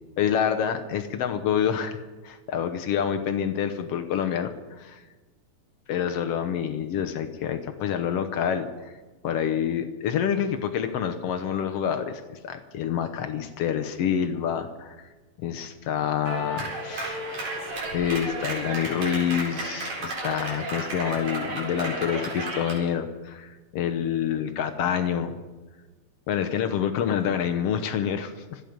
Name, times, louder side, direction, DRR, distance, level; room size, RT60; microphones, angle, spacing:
voice 1, 0.2-2.0 2.2-5.0 5.9-9.0 9.2-15.1 15.4-17.2 17.9-25.3 26.3-28.6, left 8 dB, 70° left, 7 dB, 1.6 m, -27 dB
Clapping, 16.3-22.8, right 2 dB, 75° right, 5.9 m, -33 dB
25.5 x 9.4 x 5.2 m, 1.2 s
omnidirectional pair, 3.6 m